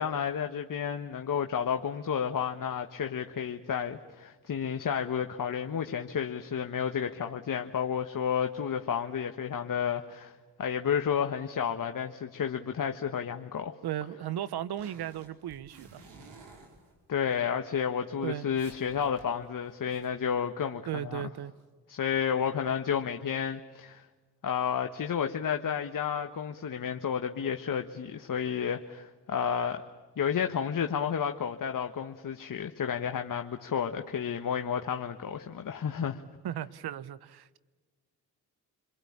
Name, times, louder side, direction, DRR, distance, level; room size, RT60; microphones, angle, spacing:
voice 1, 0.0-10.3 10.6-13.7 17.1-21.2 21.9-24.0 24.4-29.8 30.2-36.2, left 7 dB, 50° left, 1.4 m, -31 dB
voice 2, 13.8-16.0 18.2-18.5 20.9-21.5 36.4-37.6, right 11 dB, 65° right, 1.0 m, -36 dB
sound 1, 14.5-17.3 17.9-18.0 18.2-18.3 18.6-20.1, right 3 dB, 85° right, 5.0 m, -53 dB
28.0 x 22.5 x 8.7 m
supercardioid pair, 60°, 41 cm